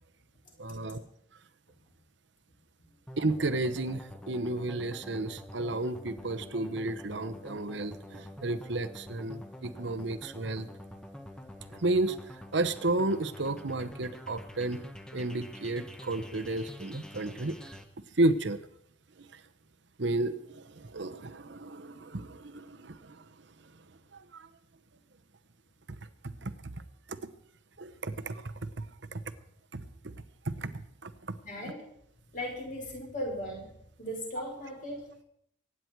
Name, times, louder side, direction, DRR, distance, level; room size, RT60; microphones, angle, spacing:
voice 1, 0.6-1.0 3.2-10.7 11.7-12.2 12.5-14.8 15.1-17.8 18.2-18.6 19.2-19.4 20.0-23.3 24.1-24.5 26.4-26.7 27.1-27.3 27.8-28.9 29.1-29.2 29.7-30.1 30.5-31.4, right 2 dB, 65° right, 11 dB, 0.9 m, -32 dB
sound 1, 3.1-17.8, left 1 dB, 5° left, 1.1 m, -46 dB
voice 2, 31.4-31.9 32.3-33.7 34.0-35.2, equal, 40° left, -1 dB, 5.5 m, -38 dB
24.0 x 9.7 x 4.6 m, 0.72 s
head